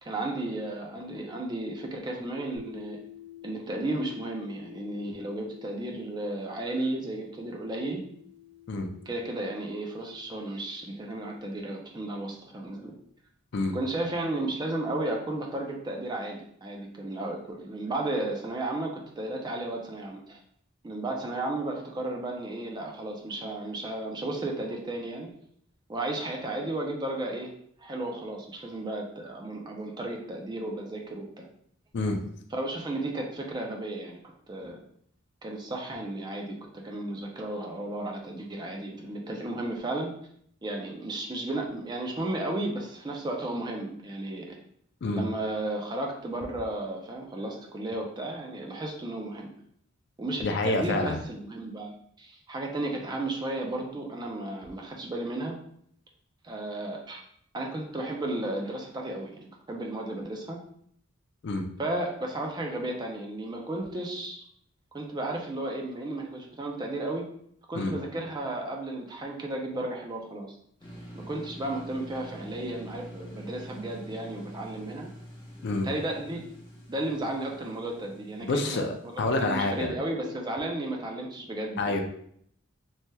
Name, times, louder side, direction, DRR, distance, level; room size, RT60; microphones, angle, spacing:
voice 1, 0.0-3.0 3.4-8.0 9.1-12.9 13.7-20.4 20.8-25.3 25.9-27.5 27.8-31.5 32.5-34.2 34.5-34.8 35.4-40.1 40.6-44.6 45.1-49.5 50.2-55.6 56.4-57.2 57.5-60.6 61.8-64.4 64.9-67.2 67.7-70.6 71.1-75.1 75.7-76.4 76.9-78.8 79.3-82.0, right 2 dB, 20° right, 1 dB, 0.4 m, -34 dB
sound 1, 2.6-11.4, left 9 dB, 80° right, 1.3 m, -51 dB
voice 2, 50.4-51.2 61.4-61.7 67.7-67.9 75.6-75.9 78.4-79.9 81.8-82.0, left 2 dB, 55° left, 4 dB, 0.4 m, -28 dB
sound 2, 70.8-79.8, equal, 25° left, 0.7 m, -46 dB
3.2 x 2.8 x 2.2 m, 0.66 s
head